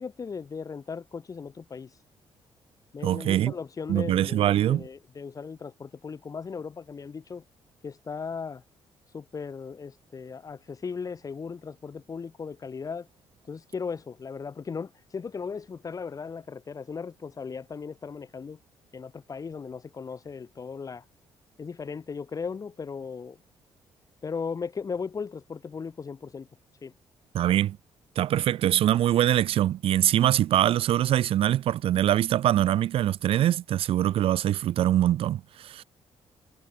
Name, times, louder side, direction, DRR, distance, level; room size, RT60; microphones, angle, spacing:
voice 1, 0.0-1.9 2.9-7.4 7.8-8.6 9.1-13.1 13.5-18.6 18.9-21.0 21.6-23.4 24.2-26.5 26.8-26.9, left 5 dB, 35° left, 3.0 m, -37 dB
voice 2, 3.0-3.5 3.9-4.8 27.3-27.8 28.2-35.8, right 12 dB, 65° right, 0.5 m, -23 dB
cardioid pair, 110°, 10 cm